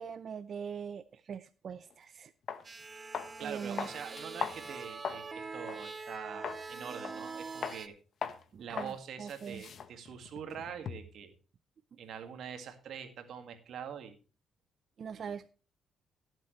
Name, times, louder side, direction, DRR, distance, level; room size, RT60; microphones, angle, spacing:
voice 1, 0.0-2.3 3.4-3.9 8.5-9.6 15.0-15.5, right 6 dB, 55° right, 11 dB, 0.6 m, -42 dB
sound 1, 1.9-2.0 2.5-2.6 3.1-3.4 3.8-5.3 5.7-5.8 6.4-6.7 7.0-7.3 7.6-7.8 8.2-8.4 8.8-9.0 9.3-11.2, left 7 dB, 55° left, 1.1 m, -39 dB
sound 2, 2.6-7.9, right 4 dB, 35° right, 1.1 m, -44 dB
voice 2, 3.4-7.9 8.6-11.3 12.0-14.1 15.1-15.3, right 7 dB, 70° right, 7 dB, 2.0 m, -44 dB
18.0 x 7.5 x 3.2 m, 0.36 s
cardioid pair, 90°, 0 cm